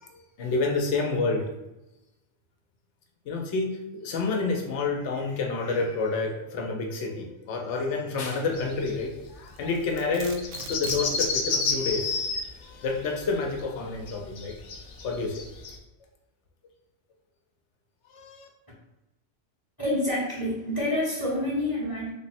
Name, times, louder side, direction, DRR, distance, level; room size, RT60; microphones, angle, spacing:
voice 1, 0.0-1.5 3.3-12.2 12.6-14.6 15.0-15.4 18.1-18.5, left 3 dB, 75° left, 2 dB, 0.9 m, -29 dB
sound 1, 8.5-9.0 9.3-9.4 9.6-9.7 10.0-15.8, left 4 dB, 60° left, 0.6 m, -30 dB
Domestic sounds home sounds, 9.5-11.4, right 5 dB, 80° right, 0.9 m, -41 dB
voice 2, 19.8-22.1, left 1 dB, 20° left, -4 dB, 0.7 m, -27 dB
3.4 x 2.1 x 4.1 m, 0.98 s
omnidirectional pair, 1.2 m